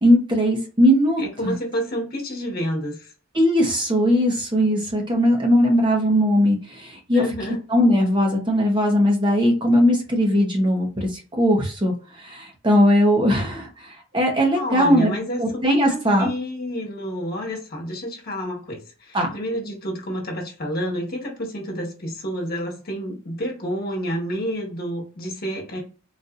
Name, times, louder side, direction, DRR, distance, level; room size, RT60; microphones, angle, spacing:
voice 1, 0.0-1.5 3.3-7.3 7.7-13.9 14.1-15.1 15.4-16.3 19.1-19.3, equal, 25° right, 1 dB, 0.8 m, -19 dB
voice 2, 1.2-3.1 7.1-7.6 14.5-25.8, equal, 45° left, 0 dB, 1.3 m, -29 dB
4.0 x 2.5 x 2.4 m, 0.35 s
head